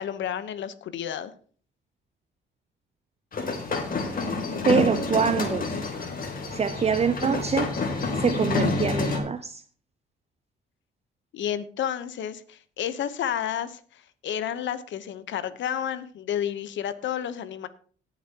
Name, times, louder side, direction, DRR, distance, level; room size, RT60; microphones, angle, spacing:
voice 1, 0.0-1.3 11.3-17.7, left 9 dB, 70° left, 1.0 m, -31 dB
sound 1, 3.3-9.2, left 3 dB, 45° left, 2.9 m, -28 dB
voice 2, 4.6-5.7 6.5-7.7 8.2-9.6, right 6 dB, 30° right, 0.6 m, -24 dB
18.0 x 7.3 x 2.9 m
cardioid pair, 90°, 20 cm